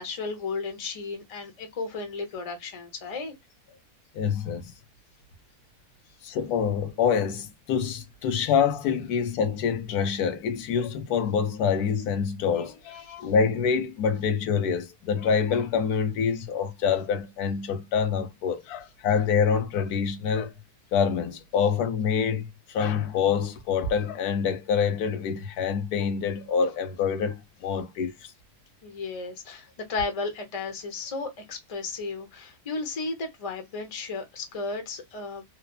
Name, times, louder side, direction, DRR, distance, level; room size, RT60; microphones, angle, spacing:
voice 1, 0.0-3.3 28.8-35.4, left 3 dB, 30° left, 0.7 m, -34 dB
voice 2, 4.1-4.7 6.2-20.5 20.9-28.1, left 6 dB, 90° left, 1.2 m, -26 dB
3.2 x 2.0 x 2.3 m
omnidirectional pair, 1.6 m